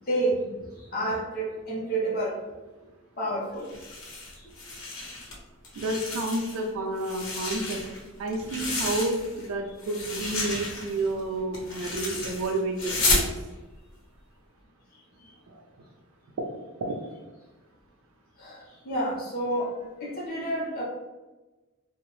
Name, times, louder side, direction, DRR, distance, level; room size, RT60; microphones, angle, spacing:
voice 1, 0.1-2.4 3.2-3.7 4.3-4.5 15.2-15.3 18.4-19.7 20.0-20.8, right 1 dB, 45° left, -5 dB, 0.6 m, -30 dB
sound 1, 3.6-5.3 5.6-6.7 7.0-9.5 9.8-13.3, left 2 dB, 80° left, 0.8 m, -31 dB
voice 2, 5.8-7.8 8.2-13.3 15.5-15.6 16.8-17.0, right 2 dB, 75° right, 1 dB, 0.4 m, -30 dB
2.7 x 2.0 x 3.0 m, 1.1 s
head